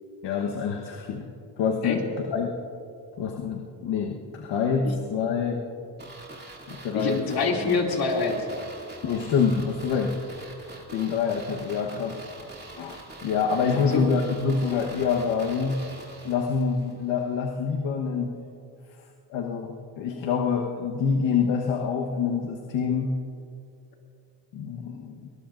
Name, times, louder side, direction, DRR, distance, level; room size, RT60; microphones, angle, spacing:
voice 1, 0.2-1.3 1.6-2.5 3.2-5.6 6.7-7.2 9.0-10.1 10.9-12.2 12.8-15.8 16.2-18.3 19.3-23.1 24.5-25.3, left 6 dB, 75° left, 1 dB, 1.3 m, -26 dB
sound 1, 6.0-16.9 17.2-17.3, right 2 dB, 20° right, 2.6 m, -44 dB
voice 2, 6.9-8.5 13.7-14.0, left 4 dB, 55° left, 0 dB, 2.7 m, -26 dB
24.0 x 19.0 x 2.6 m, 2.5 s
cardioid pair, 100°, 43 cm